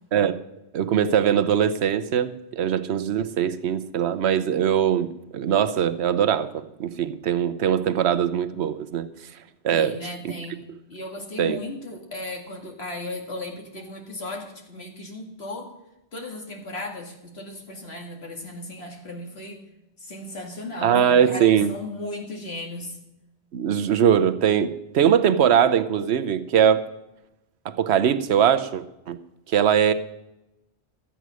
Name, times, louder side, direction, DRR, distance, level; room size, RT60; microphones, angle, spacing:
voice 1, 0.7-9.1 9.6-10.0 11.4-11.6 20.8-21.7 23.5-26.9 27.6-29.2 29.5-29.9, right 9 dB, 70° right, 11 dB, 1.0 m, -21 dB
voice 2, 9.7-10.6 10.9-15.7 16.1-19.7 20.0-23.0, left 2 dB, 60° left, 2 dB, 2.3 m, -36 dB
12.5 x 8.2 x 6.2 m, 0.91 s
omnidirectional pair, 1.2 m